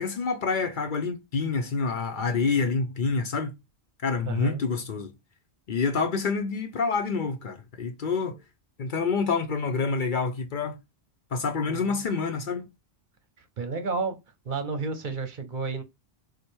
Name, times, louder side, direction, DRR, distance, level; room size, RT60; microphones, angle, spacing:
voice 1, 0.0-3.5 4.0-5.1 5.7-8.4 8.8-10.7 11.3-12.7, left 4 dB, 55° left, 0.7 m, -27 dB
voice 2, 4.2-4.6 11.6-12.0 13.4-14.2 14.4-15.8, right 4 dB, 55° right, 0.8 m, -31 dB
4.8 x 2.2 x 4.3 m
omnidirectional pair, 1.1 m